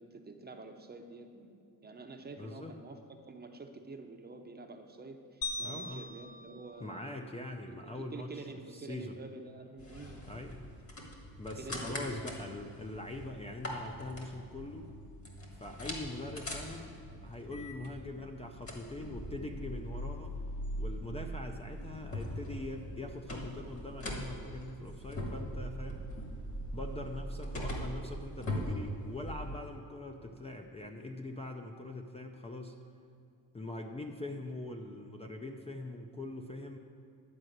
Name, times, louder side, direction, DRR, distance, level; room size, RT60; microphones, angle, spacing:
voice 1, 0.0-3.0 3.3-7.0 7.7-10.2 11.6-12.6, right 3 dB, 25° right, 5 dB, 0.7 m, -48 dB
voice 2, 2.4-2.8 5.6-6.0 6.8-9.2 10.3-10.6 11.4-14.9 15.5-17.0 17.2-20.3 20.8-26.0 26.7-32.8 33.5-36.8, left 2 dB, 15° left, 3 dB, 0.5 m, -43 dB
sound 1, 5.4-7.8, left 3 dB, 70° left, 0.8 m, -42 dB
sound 2, 9.8-29.7, equal, 40° left, 1.7 m, -41 dB
11.0 x 4.9 x 7.8 m, 2.5 s
cardioid pair, 125°, 37 cm